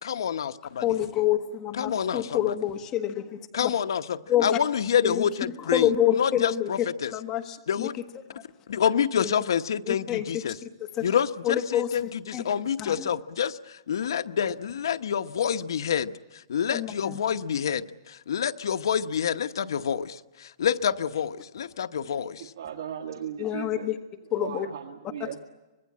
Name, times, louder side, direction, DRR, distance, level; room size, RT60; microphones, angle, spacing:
voice 1, 0.0-0.8 1.7-2.6 3.5-7.1 7.7-7.9 8.7-10.6 11.0-22.5, left 8 dB, 70° left, 9 dB, 1.0 m, -28 dB
voice 2, 0.8-3.7 4.3-4.6 5.0-5.2 5.6-6.7 7.1-7.9 8.3-8.4 9.2-9.3 9.9-10.7 11.0-11.1 11.4-11.9 12.3-12.4 12.8-13.1 16.7-17.2 23.4-24.0 24.3-24.7 25.2-25.3, left 11 dB, 20° left, 5 dB, 1.3 m, -27 dB
voice 3, 22.2-23.9 24.4-25.4, right 9 dB, 65° right, 4 dB, 1.7 m, -37 dB
25.0 x 20.5 x 8.6 m, 1.1 s
hypercardioid pair, 175°, 2 cm